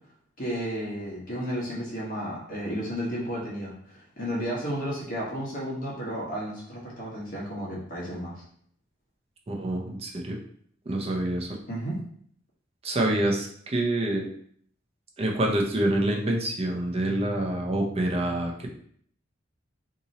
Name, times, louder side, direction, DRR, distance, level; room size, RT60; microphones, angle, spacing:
voice 1, 0.4-8.4 11.7-12.0, equal, 45° left, -5 dB, 1.1 m, -33 dB
voice 2, 9.5-10.4 10.9-11.6 12.8-14.3 15.2-18.7, right 1 dB, 30° right, 0 dB, 0.6 m, -27 dB
2.8 x 2.6 x 4.0 m, 0.62 s
head